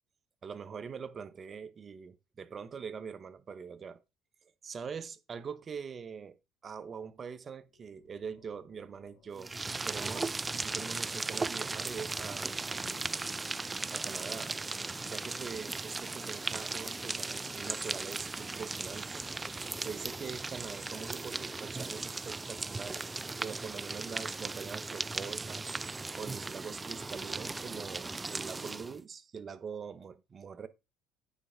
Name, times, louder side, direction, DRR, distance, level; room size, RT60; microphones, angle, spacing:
voice 1, 0.4-4.0 4.6-6.4 6.6-9.5 9.8-12.6 13.9-14.5 15.0-19.2 19.8-23.1 23.4-25.7 26.2-30.7, right 6 dB, 40° right, 1.1 m, -43 dB
sound 1, 7.4-18.6, left 7 dB, 75° left, 2.1 m, -65 dB
sound 2, 9.4-29.0, right 3 dB, 20° right, 0.4 m, -37 dB
9.0 x 4.5 x 5.1 m
hypercardioid pair, 70°, 0 cm